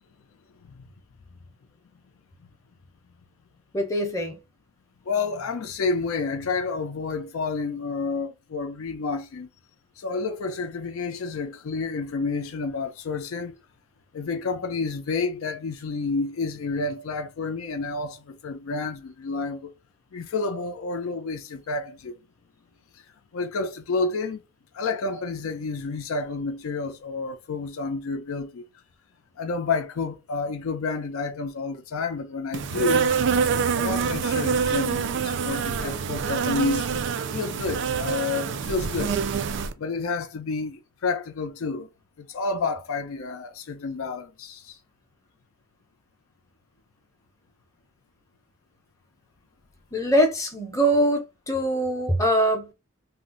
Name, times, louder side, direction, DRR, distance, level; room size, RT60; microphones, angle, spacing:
voice 1, 3.7-4.4 49.9-52.7, equal, 15° left, 0.6 m, -23 dB
voice 2, 5.1-9.5 10.0-13.6 14.1-19.7 20.1-22.2 22.9-23.0 23.3-24.4 24.7-28.7 29.4-33.1 33.8-36.9 37.3-41.9 42.2-44.8, left 4 dB, 75° left, 0.4 m, -30 dB
Insect, 32.5-39.7, right 6 dB, 55° right, 0.3 m, -26 dB
2.4 x 2.0 x 3.7 m
head